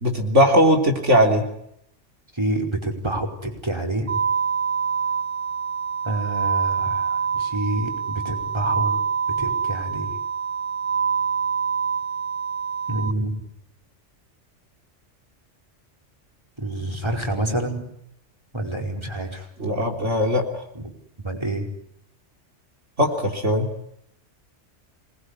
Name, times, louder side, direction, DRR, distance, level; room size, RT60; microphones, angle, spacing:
voice 1, 0.0-1.5 19.6-20.5 23.0-23.7, equal, 80° right, 3 dB, 3.8 m, -19 dB
voice 2, 2.3-4.2 6.0-9.0 9.4-10.1 12.9-13.4 16.6-17.9 18.5-19.5 20.8-20.9 21.2-21.7, right 1 dB, 20° right, 2 dB, 5.2 m, -28 dB
sound 1, 4.1-13.1, right 6 dB, 50° right, 1.7 m, -25 dB
27.5 x 21.0 x 9.9 m, 0.76 s
omnidirectional pair, 1.2 m